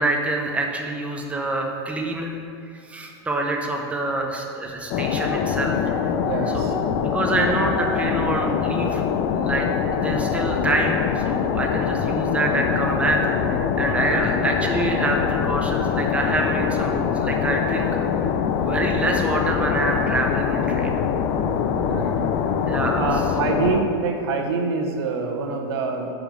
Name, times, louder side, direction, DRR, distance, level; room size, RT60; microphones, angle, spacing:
voice 1, 0.0-2.3 2.7-6.0 6.5-6.7 7.1-9.0 9.4-13.2 13.5-17.9 18.2-21.0 22.7-23.1, right 2 dB, 10° right, 1 dB, 0.7 m, -26 dB
sound 1, 4.9-23.8, left 7 dB, 50° left, 0.5 m, -23 dB
voice 2, 6.2-6.7 14.0-14.2 21.8-22.2 23.0-26.1, right 4 dB, 75° right, 3 dB, 0.9 m, -25 dB
6.0 x 5.1 x 5.1 m, 2.5 s
supercardioid pair, 130°, 13 cm